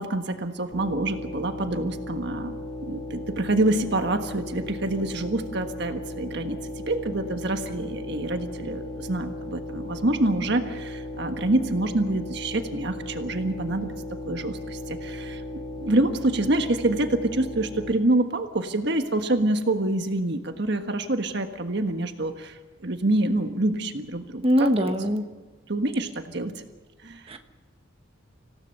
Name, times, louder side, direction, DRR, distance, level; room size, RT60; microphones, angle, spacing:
voice 1, 0.0-2.5 2.8-6.6 6.9-13.9 14.2-15.4 15.8-24.9 25.7-26.6 27.0-27.2, right 2 dB, 55° right, 6 dB, 1.5 m, -26 dB
sound 1, 0.7-17.9, left 1 dB, 30° left, 2.2 m, -36 dB
voice 2, 24.4-25.2 27.3-27.4, equal, 30° right, 6 dB, 1.4 m, -22 dB
26.5 x 16.5 x 6.7 m, 1.3 s
head